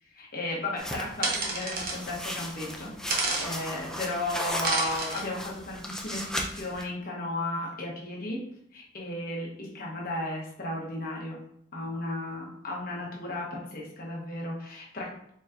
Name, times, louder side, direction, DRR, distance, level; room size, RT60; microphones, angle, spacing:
voice 1, 0.1-8.4 8.7-11.4 11.7-15.1, left 1 dB, 50° left, -3 dB, 1.0 m, -34 dB
sound 1, 0.8-6.8, equal, 5° left, 0.4 m, -37 dB
sound 2, 1.2-2.0 3.1-3.5 4.6-5.2, right 3 dB, 50° right, 0.8 m, -29 dB
4.3 x 3.3 x 2.4 m, 0.70 s
head